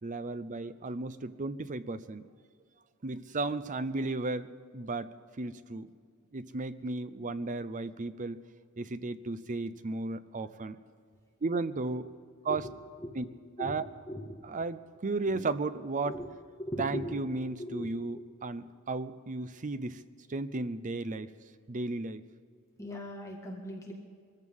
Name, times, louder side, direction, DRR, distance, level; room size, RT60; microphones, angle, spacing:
voice 1, 0.0-2.2 3.0-5.1 5.4-5.9 6.3-8.4 8.8-10.8 11.4-12.1 12.4-12.7 13.1-13.2 13.6-13.8 14.5-16.2 16.8-20.0 20.3-21.3 21.7-22.2, right 3 dB, 35° right, 13 dB, 0.6 m, -34 dB
voice 2, 13.6-14.3 15.3-15.4 16.0-16.3 16.6-17.9 18.1-18.2 22.8-23.9, equal, 15° left, -1 dB, 1.7 m, -39 dB
23.0 x 14.5 x 3.6 m, 2.1 s
head